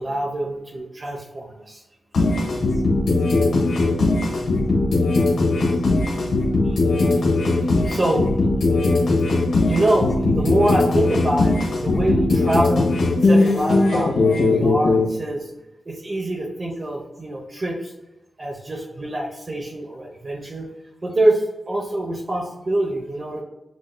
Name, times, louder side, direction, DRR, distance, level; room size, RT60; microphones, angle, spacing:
voice 1, 0.0-1.8 6.6-6.8 7.8-8.3 9.6-12.9 13.2-15.5 15.9-17.9 18.4-20.7 21.0-23.4, right 1 dB, 35° right, -1 dB, 0.8 m, -25 dB
sound 1, 2.1-15.1, left 2 dB, 85° left, 1.3 m, -19 dB
8.2 x 2.7 x 2.2 m, 0.99 s
wide cardioid pair, 115°, 0 cm